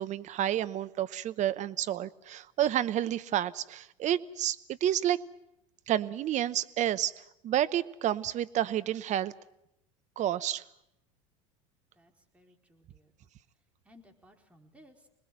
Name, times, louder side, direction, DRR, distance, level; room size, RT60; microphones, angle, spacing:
voice 1, 0.0-5.2 5.9-9.3 10.2-10.6, right 11 dB, 45° right, 1.0 m, -30 dB
voice 2, 11.9-13.1 13.8-15.1, left 1 dB, 5° right, 4.4 m, -59 dB
26.0 x 20.5 x 7.6 m
hypercardioid pair, 75°, 17 cm